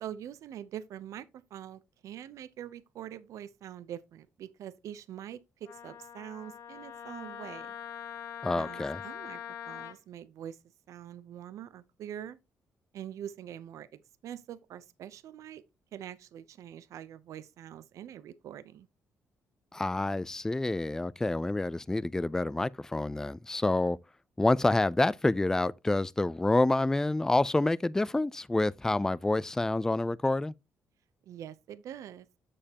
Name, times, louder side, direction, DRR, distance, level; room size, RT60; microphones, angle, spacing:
voice 1, 0.0-1.3 1.5-7.7 8.5-10.6 10.9-12.4 12.9-15.6 15.9-18.9 31.3-32.3, right 10 dB, 70° right, 0.6 m, -44 dB
Wind instrument woodwind instrument, 5.7-10.0, left 9 dB, 85° left, 0.8 m, -43 dB
voice 2, 8.4-9.0 19.7-24.0 24.4-30.5, left 2 dB, 10° left, 0.3 m, -28 dB
7.4 x 6.6 x 2.8 m
cardioid pair, 90°, 6 cm